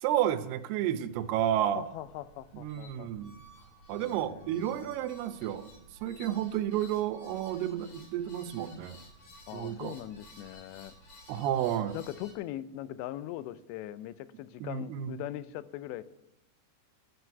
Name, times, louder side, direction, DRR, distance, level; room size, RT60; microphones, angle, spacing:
voice 1, 0.0-1.8 2.5-3.4 3.9-5.7 6.0-9.0 9.5-9.9 11.3-12.0 14.6-15.2, right 11 dB, 80° right, 10 dB, 2.6 m, -31 dB
sound 1, 1.1-12.3, left 1 dB, 55° left, 4.5 m, -55 dB
voice 2, 1.8-3.1 3.9-5.0 9.5-10.9 11.9-16.0, left 13 dB, 90° left, 15 dB, 2.9 m, -41 dB
11.5 x 7.9 x 8.1 m, 0.86 s
omnidirectional pair, 4.9 m